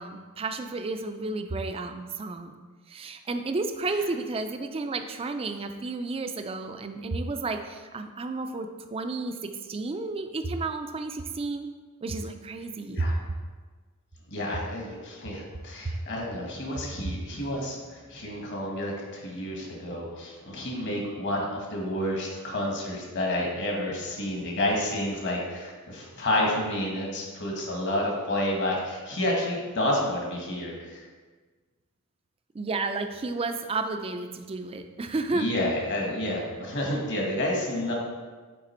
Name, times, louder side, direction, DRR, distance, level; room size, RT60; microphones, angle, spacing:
voice 1, 0.0-2.5 2.9-11.7 12.0-13.1 32.5-35.5, right 3 dB, 25° right, 7 dB, 0.4 m, -32 dB
voice 2, 14.3-31.0 35.3-37.9, left 1 dB, 55° left, -1 dB, 1.4 m, -30 dB
7.7 x 3.3 x 4.3 m, 1.4 s
head